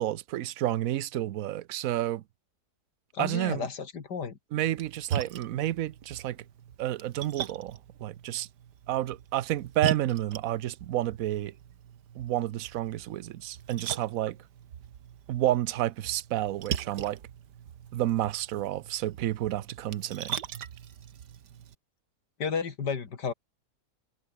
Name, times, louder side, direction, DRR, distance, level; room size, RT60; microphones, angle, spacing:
voice 1, 0.0-2.2 3.2-3.7 4.5-6.4 6.8-8.5 8.9-11.5 12.2-14.4 15.3-17.2 17.9-20.4, right 13 dB, 65° right, 1.0 m, -30 dB
voice 2, 3.1-4.4 22.4-23.3, left 6 dB, 90° left, 2.8 m, -32 dB
Splash splatter, 4.6-21.7, right 9 dB, 85° right, 1.8 m, -40 dB
omnidirectional pair, 1.8 m